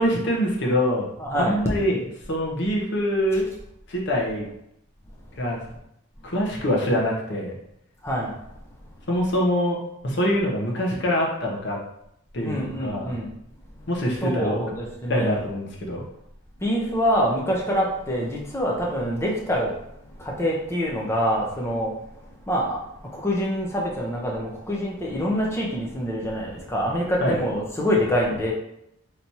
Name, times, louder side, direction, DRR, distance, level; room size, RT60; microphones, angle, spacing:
voice 1, 0.0-1.1 1.3-2.0 2.3-3.5 3.9-4.5 5.4-5.6 6.2-7.5 9.1-11.8 12.3-13.2 13.9-14.6 15.1-16.0 27.2-27.4, equal, 55° left, -1 dB, 0.7 m, -24 dB
voice 2, 1.2-1.6 8.0-8.3 12.4-13.3 14.2-15.4 16.6-19.7 20.2-21.9 22.5-22.8 23.1-28.5, equal, 10° left, -3 dB, 0.6 m, -25 dB
3.3 x 2.9 x 2.7 m, 0.78 s
head